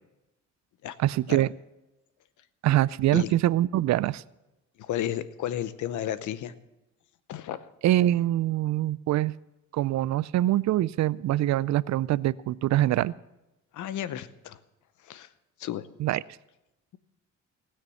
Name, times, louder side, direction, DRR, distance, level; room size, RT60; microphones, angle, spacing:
voice 1, 1.0-1.5 2.6-4.2 7.8-9.3 9.7-13.1 16.0-16.2, right 14 dB, 65° right, 20 dB, 0.4 m, -24 dB
voice 2, 4.8-6.5 7.3-7.7 13.7-14.6 15.0-15.3 15.6-15.9, left 11 dB, 75° left, 14 dB, 0.8 m, -33 dB
18.5 x 6.7 x 7.0 m, 0.95 s
cardioid pair, 90°, 30 cm